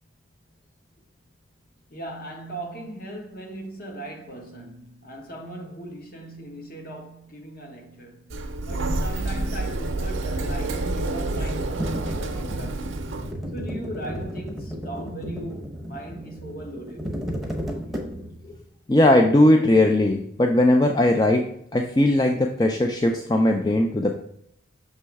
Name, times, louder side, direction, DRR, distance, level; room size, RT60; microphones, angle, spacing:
voice 1, 1.9-8.3 8.7-13.1 13.5-17.0, right 1 dB, 45° left, 1.1 m, -38 dB
Sliding door, 8.3-13.3, right 2 dB, 80° right, 0.6 m, -28 dB
sound 1, 11.8-18.5, equal, ahead, 0.8 m, -34 dB
voice 2, 18.9-21.4 21.7-24.2, left 1 dB, 20° left, 0.4 m, -19 dB
6.6 x 3.0 x 4.6 m
head